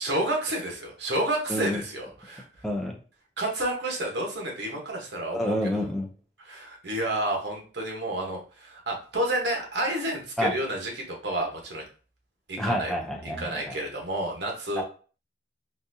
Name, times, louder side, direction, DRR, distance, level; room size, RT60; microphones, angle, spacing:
voice 1, 0.0-2.6 3.4-5.5 6.4-11.8 12.5-12.9 13.4-14.8, right 1 dB, 70° right, 0 dB, 1.1 m, -30 dB
voice 2, 1.5-1.8 2.6-3.0 5.3-6.1 10.4-10.5 12.6-13.8 14.8-14.9, left 1 dB, ahead, 0 dB, 0.5 m, -28 dB
4.0 x 2.4 x 2.7 m, 0.38 s
head